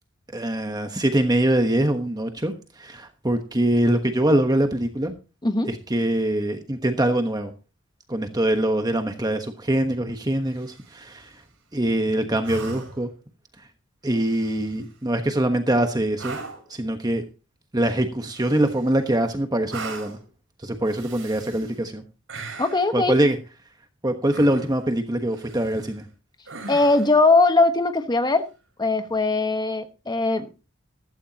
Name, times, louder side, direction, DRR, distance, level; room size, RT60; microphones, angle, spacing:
voice 1, 0.3-5.1 5.7-7.5 8.1-11.3 11.7-13.1 13.6-13.7 14.0-16.4 16.7-17.2 17.7-20.2 20.6-22.0 22.9-23.4 24.0-26.0, right 1 dB, 20° right, 6 dB, 1.2 m, -23 dB
sound 1, 10.5-11.2 12.4-13.1 14.1-14.8 16.2-16.7 18.3-19.0 19.7-20.3 20.8-21.8 22.3-22.9 24.3-24.9 25.3-26.0 26.5-27.2 29.1-29.2, right 3 dB, 65° right, 6.5 m, -39 dB
voice 2, 22.6-23.2 26.7-28.4 28.8-30.5, left 3 dB, 20° left, 8 dB, 1.3 m, -20 dB
15.0 x 13.0 x 2.9 m, 0.31 s
head